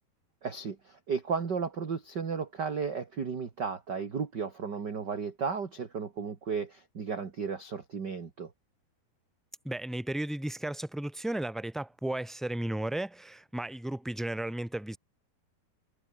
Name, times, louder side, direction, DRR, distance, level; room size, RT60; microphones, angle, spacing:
voice 1, 0.4-8.5, right 5 dB, 35° right, 2.0 m, -34 dB
voice 2, 9.6-15.0, right 1 dB, ahead, 3.2 m, -34 dB
omnidirectional pair, 4.5 m